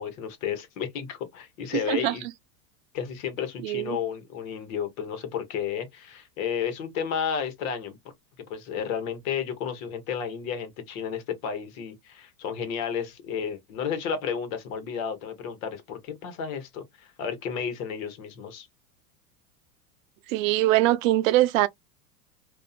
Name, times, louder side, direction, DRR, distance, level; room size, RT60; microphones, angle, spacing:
voice 1, 0.0-2.3 2.9-8.0 8.5-18.7, left 7 dB, 65° left, 1.1 m, -32 dB
voice 2, 1.7-2.2 3.6-4.0 20.3-21.7, right 16 dB, 65° right, 0.5 m, -22 dB
2.6 x 2.4 x 2.3 m
hypercardioid pair, 110°, 43 cm